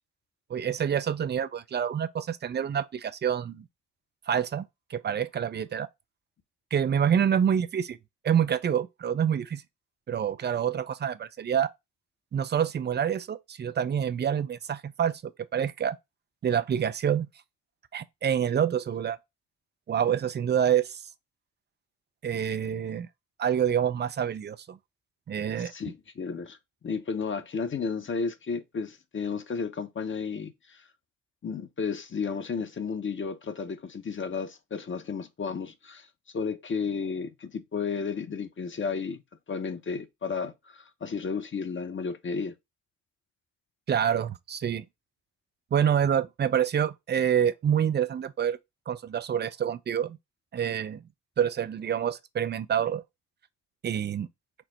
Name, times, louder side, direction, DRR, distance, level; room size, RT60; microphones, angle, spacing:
voice 1, 0.5-3.7 4.3-4.6 4.9-5.9 6.7-8.0 8.2-9.6 10.1-11.7 12.3-16.0 16.4-17.3 17.9-19.2 19.9-21.0 22.2-23.1 23.4-24.8 25.3-25.7 43.9-44.8 45.7-48.6 48.9-50.2 50.5-51.0 51.4-53.0 53.8-54.3, right 8 dB, 30° right, 0.4 m, -27 dB
voice 2, 25.6-26.6 26.8-30.8 31.4-36.1 36.3-39.2 39.5-42.5, left 5 dB, 30° left, 0.8 m, -33 dB
4.5 x 2.0 x 3.9 m
hypercardioid pair, 45°, 38 cm